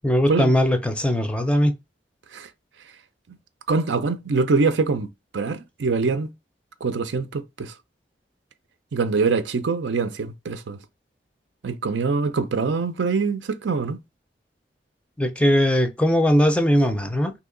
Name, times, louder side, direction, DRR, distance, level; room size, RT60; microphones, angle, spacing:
voice 1, 0.0-1.7 15.2-17.3, equal, 5° left, 0.4 m, -20 dB
voice 2, 3.7-5.1 5.3-6.3 6.8-7.7 8.9-10.8 11.6-14.0, right 4 dB, 85° right, 0.5 m, -24 dB
2.8 x 2.8 x 3.8 m
head